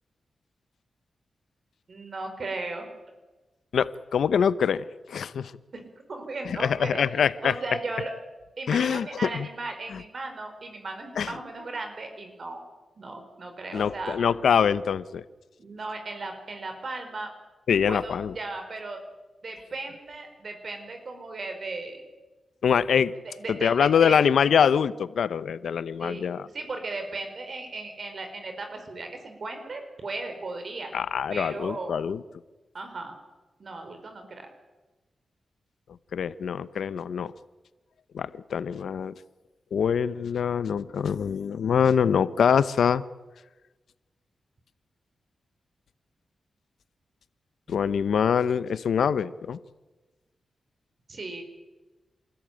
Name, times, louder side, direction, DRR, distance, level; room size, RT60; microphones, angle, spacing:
voice 1, 1.9-2.9 5.7-8.1 8.6-12.6 12.9-14.2 15.6-17.3 17.9-19.0 19.4-22.0 23.4-24.2 26.0-30.9 31.3-32.0 32.7-33.2 33.6-34.5 51.1-51.4, right 3 dB, 55° right, 5 dB, 4.8 m, -36 dB
voice 2, 3.7-5.5 6.5-7.5 8.7-9.5 9.9-10.0 11.2-11.3 13.7-15.2 17.7-18.3 22.6-23.1 23.5-26.5 30.9-32.2 36.1-37.3 38.1-39.1 39.7-43.0 47.7-49.6, left 7 dB, 80° left, 15 dB, 0.9 m, -24 dB
27.0 x 14.0 x 9.1 m, 1.2 s
cardioid pair, 70°, 0 cm